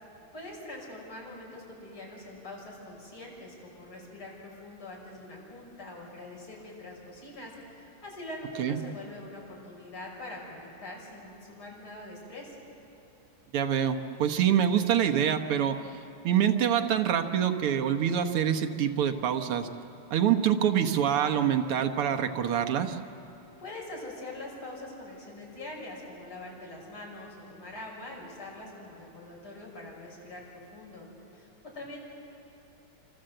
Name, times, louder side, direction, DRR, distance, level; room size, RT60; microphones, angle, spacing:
voice 1, 0.3-12.6 23.6-31.1 31.3-32.0, left 1 dB, 70° left, -3 dB, 6.9 m, -43 dB
voice 2, 13.5-15.8 16.2-19.7 20.1-23.0, right 9 dB, 85° right, 5 dB, 2.1 m, -25 dB
27.0 x 26.5 x 7.8 m, 2.9 s
omnidirectional pair, 2.4 m